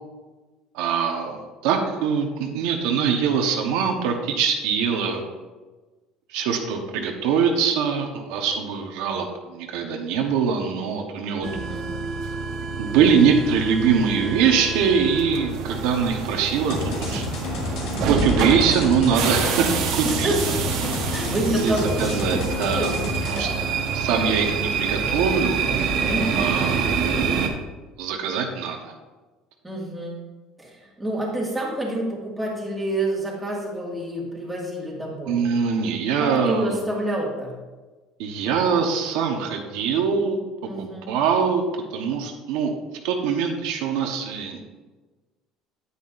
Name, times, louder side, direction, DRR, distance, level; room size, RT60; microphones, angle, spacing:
voice 1, 0.7-5.2 6.3-11.5 12.8-17.2 18.0-20.3 21.5-22.9 23.3-25.6 26.3-27.1 28.0-28.9 35.3-36.8 38.2-40.4 40.8-41.6 41.9-42.7 43.0-44.6, right 6 dB, 75° right, 2 dB, 1.1 m, -23 dB
voice 2, 11.4-11.9 20.0-23.0 23.3-23.8 24.1-24.4 26.1-26.6 29.6-30.2 30.6-35.4 36.2-37.5 40.6-41.1, right 1 dB, 5° right, -5 dB, 2.0 m, -28 dB
sound 1, 11.4-27.5, right 5 dB, 55° right, 1.1 m, -27 dB
sound 2, 16.7-23.5, left 2 dB, 60° left, 2.0 m, -30 dB
9.9 x 9.6 x 2.6 m, 1.2 s
cardioid pair, 175°, 0 cm